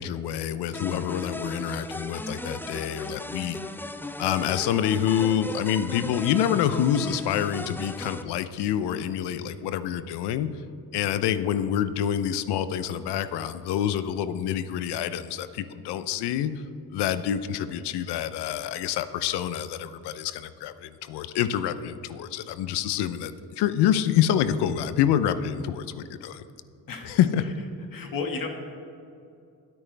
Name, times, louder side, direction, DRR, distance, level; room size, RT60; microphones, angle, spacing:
voice 1, 0.0-3.6 4.2-10.5 10.9-16.5 16.9-26.4 27.0-27.5, left 10 dB, 85° left, 13 dB, 0.7 m, -27 dB
sound 1, 0.7-8.2, left 1 dB, 5° left, 0.5 m, -36 dB
voice 2, 26.9-27.2 27.9-28.5, left 4 dB, 55° left, 3 dB, 2.0 m, -32 dB
23.5 x 8.8 x 3.4 m, 2.5 s
cardioid pair, 75°, 39 cm